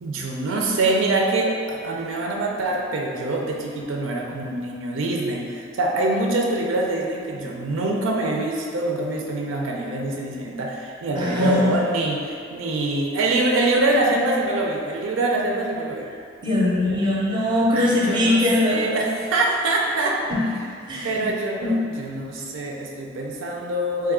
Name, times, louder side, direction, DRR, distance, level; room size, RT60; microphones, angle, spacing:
voice 1, 0.0-16.1 17.7-20.2 21.0-24.1, right 2 dB, 80° right, -1 dB, 0.4 m, -24 dB
voice 2, 11.2-11.8 16.4-18.8 20.3-20.4 20.9-21.3 21.6-22.3, left 1 dB, 25° right, -5 dB, 0.5 m, -22 dB
3.1 x 2.3 x 3.5 m, 2.3 s
head